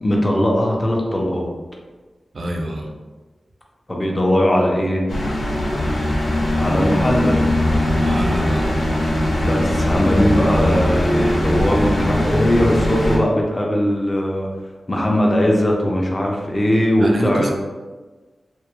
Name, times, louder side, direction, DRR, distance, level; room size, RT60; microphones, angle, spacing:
voice 1, 0.0-1.5 3.9-5.0 6.5-7.4 9.4-14.5 14.9-17.5, equal, 25° left, -1 dB, 0.5 m, -19 dB
voice 2, 2.3-2.9 8.0-8.7 17.0-17.5, right 1 dB, 65° right, 1 dB, 0.4 m, -25 dB
sound 1, 5.1-13.2, left 1 dB, 70° left, 0.6 m, -20 dB
2.2 x 2.1 x 2.9 m, 1.3 s
cardioid pair, 65°, 0 cm